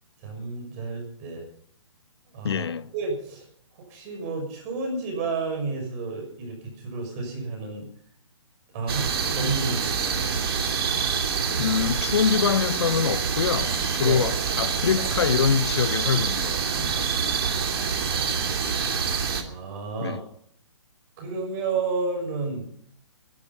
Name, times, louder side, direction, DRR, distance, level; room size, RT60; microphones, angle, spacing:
voice 1, 0.2-1.5 2.3-2.7 2.9-3.5 3.9-7.9 8.7-10.2 14.0-14.3 17.5-17.6 18.0-18.9 19.4-20.2 21.2-22.7, right 3 dB, 30° right, 6.3 m, -31 dB
voice 2, 2.4-2.9 11.6-17.1 20.0-20.2, left 7 dB, 55° left, 0.8 m, -25 dB
sound 1, 8.9-19.4, right 6 dB, 50° right, 2.8 m, -26 dB
22.0 x 11.5 x 5.6 m
figure-of-eight pair, 130°, 16 cm